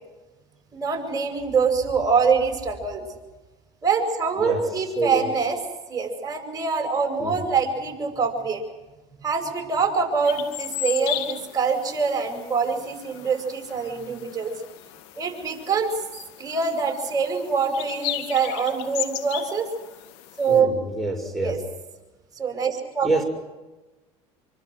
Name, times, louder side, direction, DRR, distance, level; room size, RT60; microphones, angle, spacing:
voice 1, 0.7-3.0 3.8-5.6 5.9-8.6 9.2-14.5 15.2-15.9 16.4-19.7 20.4-20.7 21.4-21.6 22.4-23.1, right 5 dB, 25° right, 7.7 m, -24 dB
voice 2, 4.4-4.7 4.9-5.3 7.2-7.4 20.5-21.6 23.0-23.2, right 2 dB, ahead, 6.6 m, -26 dB
sound 1, 10.2-20.6, left 14 dB, 75° left, 2.0 m, -36 dB
26.0 x 25.0 x 6.4 m
hypercardioid pair, 85°, 15 cm